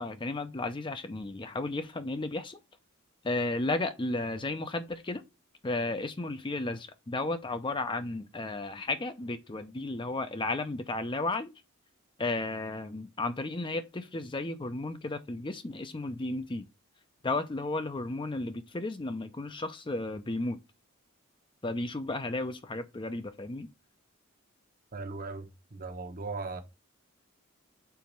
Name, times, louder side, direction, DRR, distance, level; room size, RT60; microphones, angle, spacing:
voice 1, 0.0-2.6 3.2-5.2 5.6-11.5 12.2-16.6 17.2-20.6 21.6-23.7, left 2 dB, 25° left, 0.6 m, -33 dB
voice 2, 24.9-26.6, right 3 dB, 45° right, 1.0 m, -38 dB
4.6 x 4.1 x 5.3 m
head